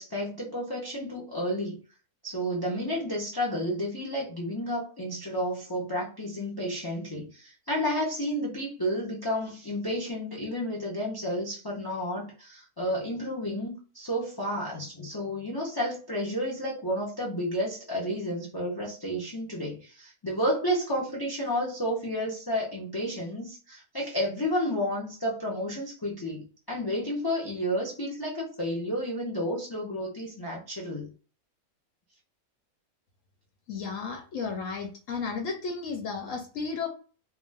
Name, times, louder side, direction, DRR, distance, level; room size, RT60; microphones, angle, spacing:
voice 1, 0.0-1.8 2.2-31.1, equal, 40° left, -4 dB, 0.3 m, -31 dB
voice 2, 33.7-36.9, left 5 dB, 70° left, 2 dB, 0.9 m, -33 dB
2.3 x 2.3 x 3.3 m, 0.37 s
omnidirectional pair, 1.6 m